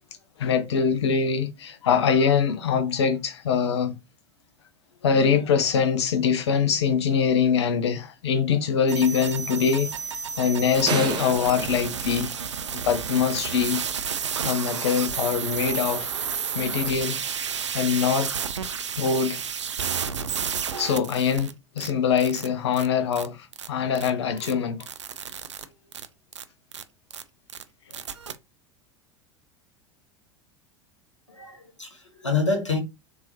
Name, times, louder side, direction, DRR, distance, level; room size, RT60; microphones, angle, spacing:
voice 1, 0.4-3.9 5.0-9.9 10.4-12.3 12.9-13.8 14.5-16.1 16.5-17.2 17.7-18.3 19.0-19.4 20.8-24.9, left 6 dB, 65° left, 0.7 m, -23 dB
sound 1, 8.9-21.5 21.8-21.9 22.2-22.5 22.7-22.9 23.1-23.3 23.5-23.7 23.9-24.1 24.4-24.5 24.8-25.6 25.9-26.0 26.3-26.4 26.7-26.8 27.1-27.2 27.5-27.6 27.9-28.3, right 7 dB, 80° right, 0.4 m, -31 dB
sound 2, 10.9-13.0, right 7 dB, 30° right, 0.7 m, -32 dB
voice 2, 31.3-32.8, left 4 dB, 85° left, 1.1 m, -27 dB
3.7 x 3.0 x 2.7 m
figure-of-eight pair, 80°, 15 cm